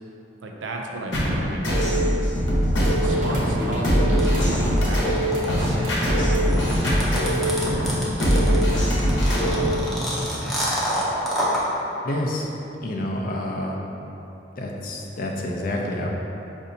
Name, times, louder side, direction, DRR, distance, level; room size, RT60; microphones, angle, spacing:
voice 1, 0.4-1.6 2.8-6.5 6.9-9.1, right 2 dB, 85° right, 0 dB, 0.5 m, -34 dB
sound 1, 1.1-9.8, equal, 80° left, 0.9 m, -21 dB
sound 2, 2.8-10.4, equal, 45° right, 0.8 m, -32 dB
sound 3, 4.2-11.6, equal, ahead, 0.5 m, -27 dB
voice 2, 12.0-12.5 12.8-13.8 14.6-16.1, left 1 dB, 50° left, 0 dB, 0.4 m, -28 dB
5.2 x 2.6 x 2.7 m, 3.0 s
head